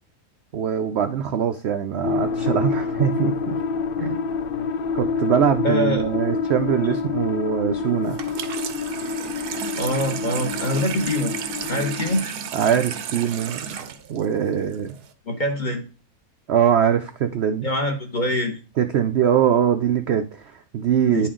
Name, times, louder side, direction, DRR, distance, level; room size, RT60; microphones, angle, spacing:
voice 1, 0.5-3.6 4.0-4.2 4.9-8.2 12.5-13.6 14.1-14.9 16.5-17.7 18.8-21.3, right 8 dB, 65° right, 7 dB, 0.6 m, -22 dB
sound 1, 2.0-12.2, left 5 dB, 80° left, 0.5 m, -27 dB
voice 2, 5.6-6.0 9.8-11.3 11.7-12.4 15.3-15.8 17.6-18.6 21.1-21.3, left 1 dB, 35° left, 4 dB, 1.0 m, -24 dB
Water tap faucet / Sink (filling or washing), 8.1-15.1, right 7 dB, 85° right, 1.3 m, -33 dB
9.8 x 4.4 x 3.7 m, 0.33 s
omnidirectional pair, 1.7 m